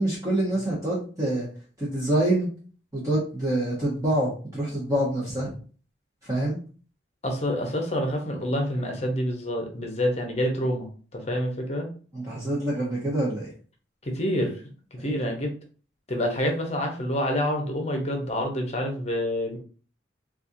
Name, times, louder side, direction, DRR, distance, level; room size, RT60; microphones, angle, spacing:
voice 1, 0.0-1.5 1.8-2.5 2.9-5.5 6.2-6.6 12.1-13.5 15.0-15.1, right 1 dB, 15° right, -7 dB, 0.9 m, -26 dB
voice 2, 7.2-10.9 11.1-11.9 14.0-14.5 15.0-15.5 16.1-19.6, equal, 35° left, 3 dB, 0.8 m, -27 dB
4.2 x 2.4 x 2.6 m, 0.40 s
head